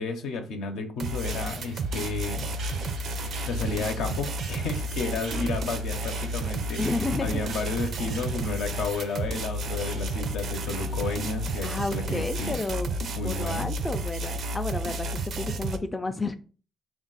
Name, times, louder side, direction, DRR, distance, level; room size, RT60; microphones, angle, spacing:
voice 1, 0.0-2.5 3.2-6.8 7.2-12.6 13.2-13.7 15.4-15.6, left 3 dB, 85° left, 5 dB, 0.7 m, -32 dB
sound 1, 1.0-15.8, right 1 dB, 65° right, 0.5 m, -31 dB
sound 2, 1.2-12.7, right 2 dB, 90° right, 0.9 m, -44 dB
voice 2, 6.8-7.4 11.6-12.9 13.2-16.4, left 2 dB, 20° left, 7 dB, 0.3 m, -31 dB
3.6 x 2.4 x 3.9 m, 0.38 s
cardioid pair, 90°, 0 cm